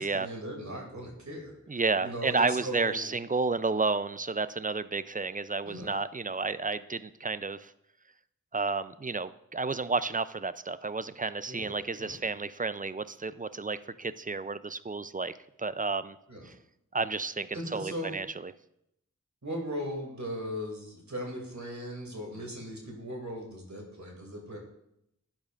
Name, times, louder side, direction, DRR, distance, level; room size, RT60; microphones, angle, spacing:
voice 1, 0.0-1.5 2.0-3.1 5.6-5.9 11.5-12.2 16.3-16.5 17.5-18.1 19.4-24.6, equal, 60° right, 0 dB, 2.4 m, -38 dB
voice 2, 1.7-7.7 8.5-16.2 16.5-16.6 16.9-18.5, right 4 dB, 25° right, 14 dB, 0.4 m, -31 dB
12.5 x 8.9 x 2.4 m, 0.79 s
wide cardioid pair, 45°, 32 cm